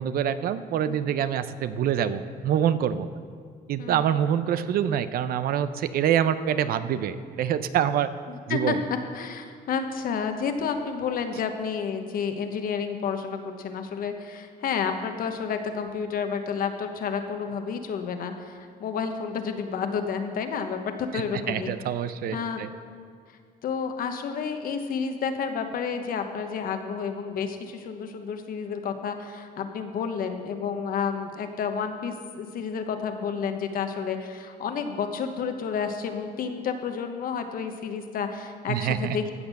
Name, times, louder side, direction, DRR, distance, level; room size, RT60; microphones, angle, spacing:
voice 1, 0.0-3.1 3.7-8.1 8.5-8.8 21.1-22.7 38.7-39.2, right 9 dB, 65° right, 13 dB, 0.6 m, -26 dB
voice 2, 8.3-8.7 9.1-21.7 22.3-22.6 23.3-23.4 23.6-39.3, left 6 dB, 60° left, 6 dB, 1.1 m, -30 dB
15.5 x 6.0 x 6.5 m, 2.1 s
cardioid pair, 110°, 17 cm